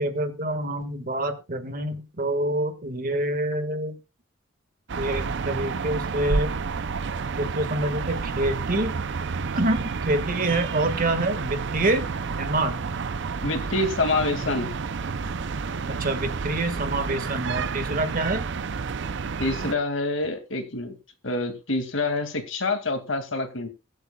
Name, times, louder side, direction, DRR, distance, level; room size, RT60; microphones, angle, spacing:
voice 1, 0.0-4.0 5.0-6.5 7.4-8.9 9.5-12.0 12.3-12.8 15.9-18.5, right 1 dB, 45° right, 8 dB, 1.7 m, -26 dB
sound 1, 4.9-19.8, right 5 dB, 60° right, 0.6 m, -30 dB
voice 2, 13.4-14.7 19.4-20.9 21.2-23.7, left 2 dB, 70° left, 6 dB, 2.3 m, -26 dB
22.5 x 8.0 x 2.3 m, 0.28 s
head